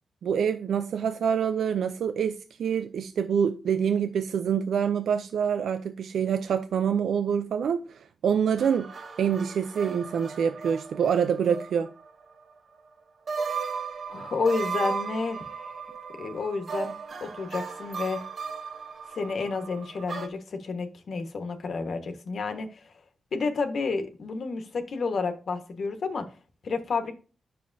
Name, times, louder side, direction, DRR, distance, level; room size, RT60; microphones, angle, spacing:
voice 1, 0.2-8.9 9.2-11.9, right 7 dB, 85° right, 0.5 m, -26 dB
sound 1, 8.6-12.1 12.4-12.5 13.3-20.3, right 5 dB, 50° right, 1.1 m, -36 dB
voice 2, 14.1-15.7 16.2-18.2 19.1-22.9 23.3-26.3 26.6-27.1, left 4 dB, 60° left, 1.3 m, -30 dB
9.8 x 6.4 x 2.7 m
wide cardioid pair, 115°, 0 cm